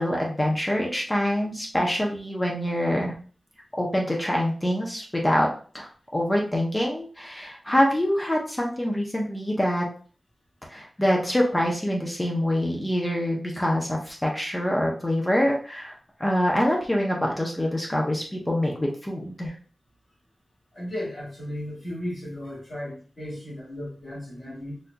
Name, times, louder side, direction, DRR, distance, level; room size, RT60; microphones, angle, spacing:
voice 1, 0.0-3.1 3.8-5.5 5.7-9.8 10.7-15.9 16.2-19.5, equal, 15° left, -1 dB, 0.6 m, -25 dB
voice 2, 20.7-24.8, left 1 dB, 40° left, -8 dB, 1.6 m, -35 dB
4.1 x 2.6 x 2.2 m, 0.41 s
wide cardioid pair, 130°, 0 cm